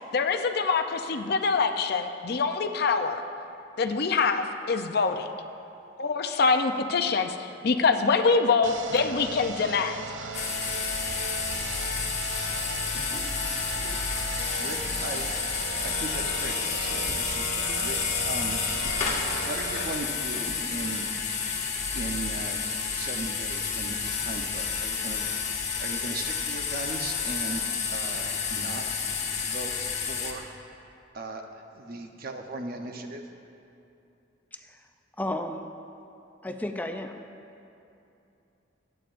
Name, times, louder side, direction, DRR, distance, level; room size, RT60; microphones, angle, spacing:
voice 1, 0.1-3.2 3.8-5.3 6.0-10.0, left 4 dB, 60° left, 7 dB, 0.6 m, -25 dB
sound 1, 8.6-19.9, right 5 dB, 85° right, 0.6 m, -37 dB
sound 2, 10.3-30.3, left 5 dB, 40° left, 1.3 m, -30 dB
voice 2, 14.6-15.3 15.8-18.0 18.2-18.6 19.3-21.1 21.9-22.6 22.9-29.0 29.4-30.4 31.1-31.4 31.7-33.2, right 2 dB, 55° right, 4 dB, 0.9 m, -38 dB
voice 3, 34.5-34.9 35.2-35.7 36.4-37.2, left 1 dB, 10° left, 5 dB, 0.4 m, -33 dB
23.0 x 8.9 x 2.6 m, 2.8 s
head